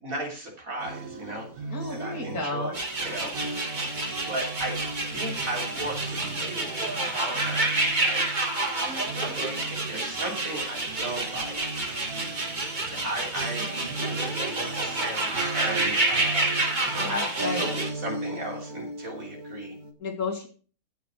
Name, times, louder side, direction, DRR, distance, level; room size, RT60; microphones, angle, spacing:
voice 1, 0.0-3.7 4.3-4.8 5.1-8.3 9.2-11.6 12.9-13.7 14.0-16.5 16.9-19.8, right 1 dB, 70° right, 1 dB, 3.9 m, -36 dB
sound 1, 0.8-19.9, right 2 dB, 85° right, 2.0 m, -37 dB
voice 2, 1.7-2.8 16.9-17.7 20.0-20.5, left 3 dB, 85° left, 0 dB, 3.0 m, -32 dB
sound 2, 2.7-17.9, right 2 dB, 30° right, 2.1 m, -29 dB
16.0 x 5.9 x 6.2 m, 0.40 s
omnidirectional pair, 1.5 m